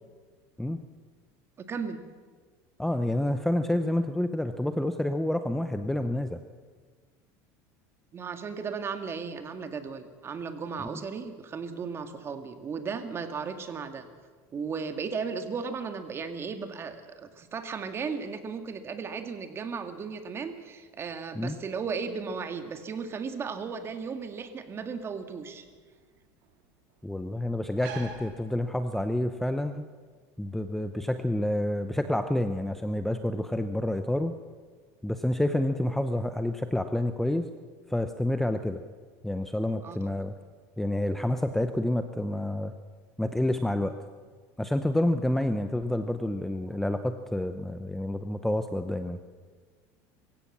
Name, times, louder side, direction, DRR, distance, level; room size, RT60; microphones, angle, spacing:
voice 1, 1.6-2.0 8.1-14.1 14.5-25.6 39.8-40.0, right 5 dB, 30° right, 8 dB, 2.0 m, -35 dB
voice 2, 2.8-6.4 10.8-11.0 21.3-21.6 27.0-29.8 30.4-34.3 35.0-37.5 37.9-38.8 39.2-40.3 40.8-42.7 43.2-44.0 44.6-49.2, left 1 dB, 5° left, 9 dB, 0.8 m, -28 dB
sound 1, 22.2-29.2, right 5 dB, 80° right, 3.4 m, -49 dB
23.5 x 16.0 x 7.4 m, 1.5 s
supercardioid pair, 135°, 9 cm